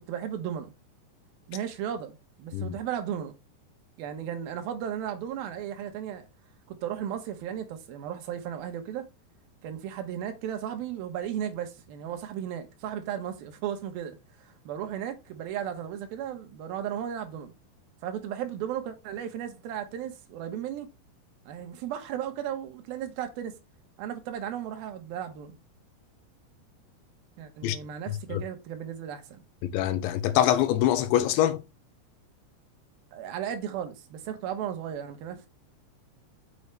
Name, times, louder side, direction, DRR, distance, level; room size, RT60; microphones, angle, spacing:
voice 1, 0.1-0.7 1.5-3.3 4.0-6.2 6.7-9.1 9.6-17.5 18.0-20.9 21.5-23.5 24.0-25.5 27.4-29.4 33.1-35.5, right 9 dB, 70° right, 2.7 m, -35 dB
voice 2, 28.1-28.4 29.6-31.6, left 12 dB, 85° left, 3.2 m, -25 dB
7.0 x 6.4 x 3.3 m
omnidirectional pair, 5.1 m